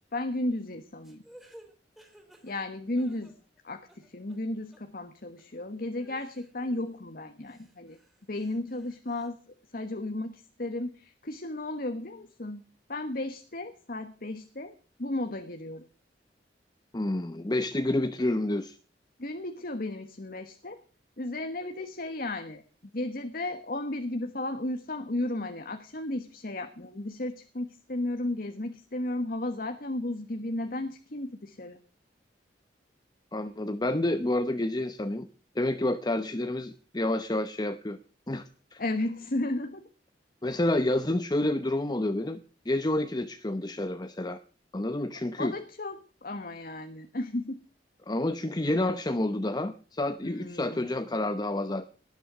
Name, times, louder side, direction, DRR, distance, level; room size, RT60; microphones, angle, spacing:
voice 1, 0.1-1.2 2.4-3.3 3.6-8.0 8.3-9.4 9.7-12.6 12.9-15.9 19.2-20.8 21.2-22.6 22.9-31.8 38.8-39.9 45.4-47.6 50.2-50.9, left 1 dB, 50° left, 8 dB, 1.3 m, -34 dB
sound 1, 1.0-3.6 3.9-4.4 4.7-4.8 5.4-5.5 6.0-7.0 7.4-9.3, right 1 dB, ahead, 3.4 m, -56 dB
voice 2, 16.9-18.8 33.3-35.3 35.6-38.0 38.3-38.8 40.4-42.4 42.6-44.4 44.7-45.5 48.1-51.9, left 1 dB, 20° left, 9 dB, 0.8 m, -29 dB
18.5 x 11.0 x 6.1 m, 0.40 s
head